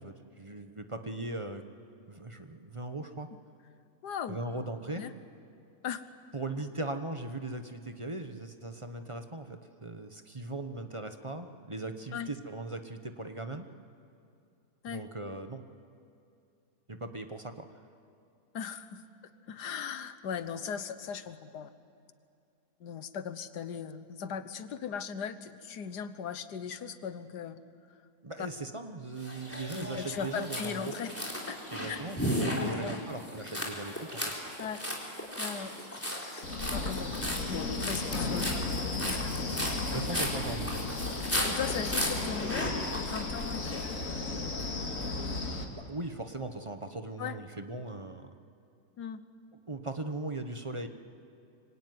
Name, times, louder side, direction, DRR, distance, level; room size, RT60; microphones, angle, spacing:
voice 1, 0.0-1.6 2.1-3.3 4.3-5.0 6.3-13.7 14.9-15.6 16.9-17.7 28.2-30.9 31.7-34.3 39.9-40.8 45.7-48.3 49.7-50.9, right 2 dB, 20° right, 7 dB, 1.0 m, -39 dB
voice 2, 4.0-4.4 5.0-5.1 5.8-6.0 12.1-12.3 14.8-15.0 18.5-19.0 19.5-21.7 22.8-27.6 29.7-31.1 31.4-31.6 31.9-32.0 32.6-33.0 34.6-34.9 35.4-35.7 36.2-36.5 36.7-37.1 37.5-38.8 39.1-39.4 41.4-43.8 47.2-47.4 49.0-49.2, left 7 dB, 85° left, 12 dB, 1.7 m, -38 dB
sound 1, 29.2-44.0, equal, 10° left, 4.2 m, -36 dB
Wind, 36.4-45.6, left 3 dB, 55° left, 2.4 m, -35 dB
25.5 x 24.5 x 9.5 m, 2.6 s
omnidirectional pair, 1.7 m